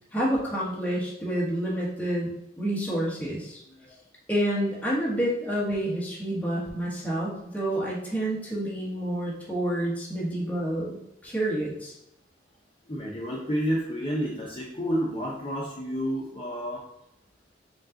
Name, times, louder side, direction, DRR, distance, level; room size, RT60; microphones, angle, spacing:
voice 1, 0.1-2.3 2.6-3.6 4.3-11.0 11.2-11.9, right 1 dB, 10° left, -5 dB, 1.3 m, -28 dB
voice 2, 3.7-4.0 12.9-16.8, equal, 30° left, -5 dB, 0.7 m, -30 dB
5.3 x 2.4 x 3.7 m, 0.82 s
head